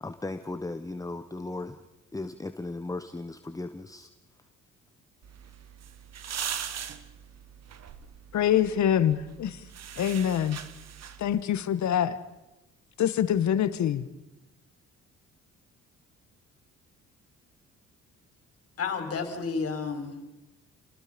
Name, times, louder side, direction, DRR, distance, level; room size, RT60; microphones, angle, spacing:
voice 1, 0.0-1.8 2.1-4.1, left 2 dB, 10° left, 8 dB, 1.2 m, -36 dB
sound 1, 5.2-11.4, right 8 dB, 60° right, 1.8 m, -40 dB
voice 2, 8.3-9.6 10.0-10.6 11.2-12.2 13.0-14.1, left 10 dB, 70° left, 13 dB, 1.6 m, -25 dB
voice 3, 18.8-20.3, left 5 dB, 50° left, 6 dB, 4.7 m, -31 dB
29.0 x 20.0 x 5.3 m, 0.98 s
cardioid pair, 90°, 30 cm